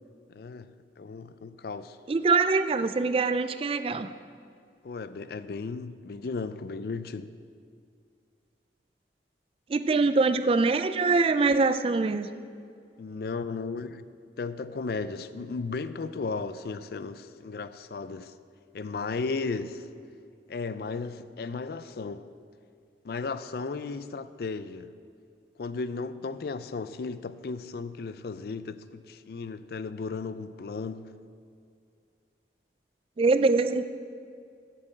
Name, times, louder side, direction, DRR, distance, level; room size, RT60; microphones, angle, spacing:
voice 1, 0.3-2.0 4.8-7.3 13.0-14.0 14.4-18.3 18.7-19.9 20.5-22.3 23.0-24.9 25.6-31.1, left 4 dB, 55° left, 0.4 m, -35 dB
voice 2, 2.1-4.1 9.7-12.3 33.2-33.8, right 3 dB, 30° right, 0.3 m, -23 dB
8.3 x 7.6 x 7.5 m
head